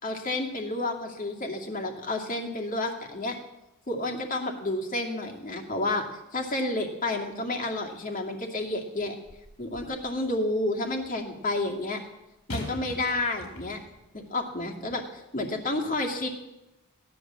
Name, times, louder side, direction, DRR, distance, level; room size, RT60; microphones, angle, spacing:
voice 1, 0.0-3.4 3.9-6.1 6.3-9.2 9.6-12.0 12.5-13.8 14.1-16.3, left 2 dB, 40° left, 1 dB, 2.4 m, -30 dB
sound 1, 9.2-10.1 12.5-14.0 14.8-14.9, left 2 dB, 90° left, 4.7 m, -40 dB
16.5 x 11.0 x 7.5 m, 0.93 s
head